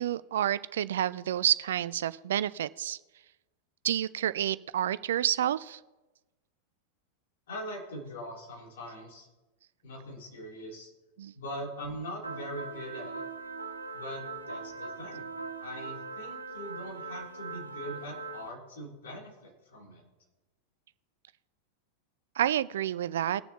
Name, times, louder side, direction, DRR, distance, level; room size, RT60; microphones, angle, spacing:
voice 1, 0.0-3.0 3.8-5.8 11.2-11.3 22.4-23.4, right 11 dB, 60° right, 18 dB, 0.3 m, -29 dB
voice 2, 7.5-9.3 9.8-10.9 11.3-13.2 13.9-15.3 15.6-20.0, equal, 60° left, -2 dB, 3.2 m, -41 dB
sound 1, 12.2-18.5, right 4 dB, 85° right, 0.7 m, -40 dB
21.0 x 6.9 x 2.9 m, 1.1 s
figure-of-eight pair, 90°, 0 cm